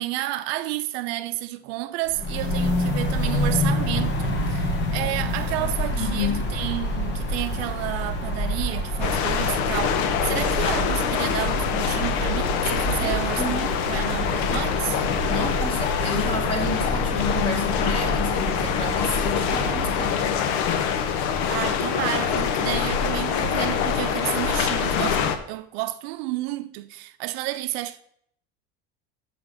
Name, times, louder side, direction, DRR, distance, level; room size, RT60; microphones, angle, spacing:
voice 1, 0.0-15.0 21.5-28.0, right 16 dB, 75° right, 0.6 m, -31 dB
sound 1, 2.1-20.4, left 1 dB, 35° left, 1.2 m, -28 dB
voice 2, 5.9-6.5 13.0-13.7 15.3-20.5, left 3 dB, 15° left, 2.0 m, -30 dB
sound 2, 9.0-25.3, left 7 dB, 75° left, 1.0 m, -25 dB
6.8 x 5.9 x 6.3 m
cardioid pair, 155°, 31 cm